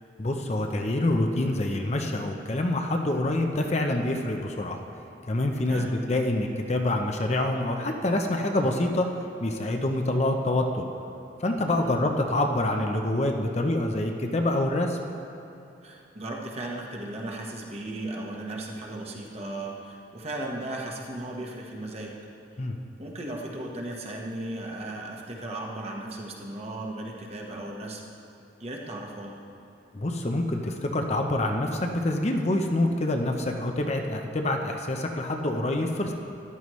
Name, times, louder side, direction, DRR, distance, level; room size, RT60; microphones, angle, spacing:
voice 1, 0.2-4.8 5.3-10.8 11.4-15.0 22.6-22.8 29.9-36.1, left 1 dB, 35° left, 3 dB, 0.7 m, -26 dB
voice 2, 15.8-22.1 23.0-28.0 28.6-29.4, right 1 dB, 35° right, -1 dB, 1.2 m, -36 dB
13.5 x 11.5 x 3.1 m, 2.8 s
head